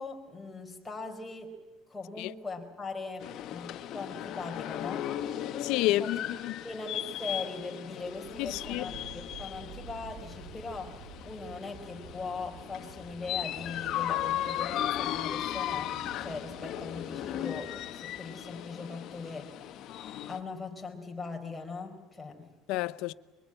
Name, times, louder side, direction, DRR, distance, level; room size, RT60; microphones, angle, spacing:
voice 1, 0.0-1.5 1.9-5.4 5.8-6.3 6.6-19.6 20.3-22.5, left 3 dB, 10° left, 4.3 m, -40 dB
sound 1, 3.2-20.4, left 12 dB, 55° left, 1.3 m, -37 dB
voice 2, 5.6-6.6 8.4-8.8 22.7-23.1, left 17 dB, 75° left, 0.7 m, -30 dB
sound 2, 7.9-18.7, right 5 dB, 45° right, 5.5 m, -50 dB
23.0 x 22.5 x 9.0 m
cardioid pair, 130°, 0 cm